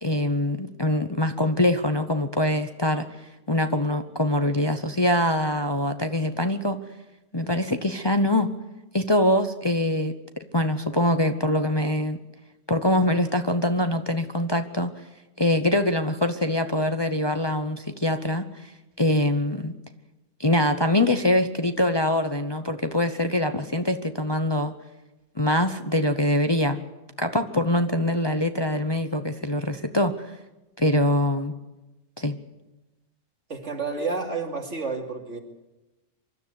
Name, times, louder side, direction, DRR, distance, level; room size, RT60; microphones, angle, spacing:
voice 1, 0.0-3.1 3.5-6.8 7.3-8.5 8.9-10.1 10.5-12.2 12.7-14.9 15.4-18.7 19.0-19.7 20.4-24.7 25.4-26.8 27.2-30.3 30.8-31.5 32.2-32.4, left 1 dB, 25° left, 7 dB, 0.8 m, -23 dB
voice 2, 33.5-35.4, right 4 dB, 70° right, 2 dB, 3.1 m, -30 dB
25.0 x 13.0 x 8.3 m, 1.0 s
omnidirectional pair, 1.3 m